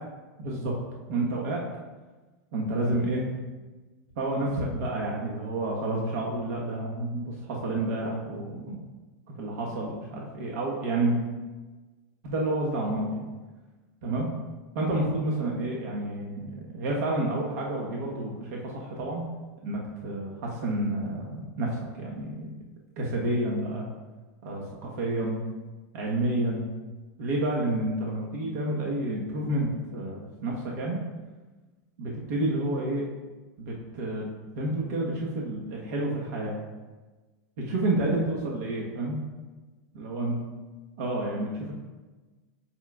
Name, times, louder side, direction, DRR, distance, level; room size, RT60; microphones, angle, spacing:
voice 1, 0.4-0.7 1.1-1.6 2.5-3.2 4.2-8.8 9.4-11.2 12.2-13.2 14.0-14.3 14.7-19.2 19.6-22.5 23.0-23.9 24.4-25.4 25.9-26.7 27.2-31.0 32.0-33.1 33.6-34.3 34.5-36.5 37.6-39.2 40.0-40.4 41.0-41.7, right 1 dB, 65° right, -3 dB, 1.2 m, -29 dB
7.3 x 5.6 x 2.3 m, 1.3 s
supercardioid pair, 150°, 9 cm